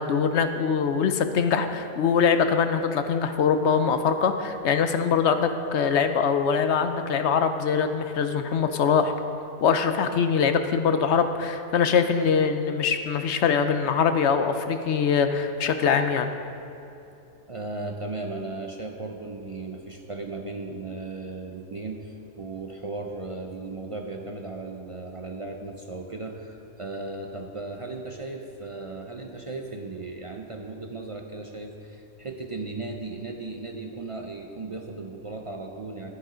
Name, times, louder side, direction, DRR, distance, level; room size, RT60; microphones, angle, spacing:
voice 1, 0.0-9.1 9.6-16.3, left 6 dB, 60° left, 8 dB, 0.8 m, -23 dB
voice 2, 17.5-36.1, right 3 dB, 50° right, 2 dB, 0.4 m, -36 dB
10.5 x 9.8 x 5.0 m, 2.8 s
omnidirectional pair, 1.5 m